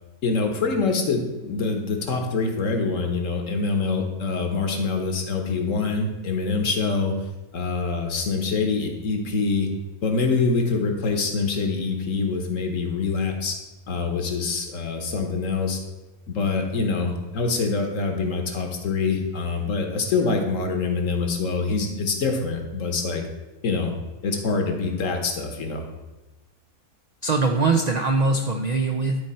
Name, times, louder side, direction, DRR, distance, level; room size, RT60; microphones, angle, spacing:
voice 1, 0.2-7.1 7.5-9.7 10.0-13.6 13.9-15.8 16.3-23.2 23.6-23.9 24.2-25.9, left 4 dB, 65° left, 3 dB, 1.4 m, -25 dB
voice 2, 27.2-29.2, right 3 dB, 85° right, 4 dB, 0.3 m, -22 dB
11.0 x 4.4 x 4.3 m, 1.1 s
omnidirectional pair, 1.5 m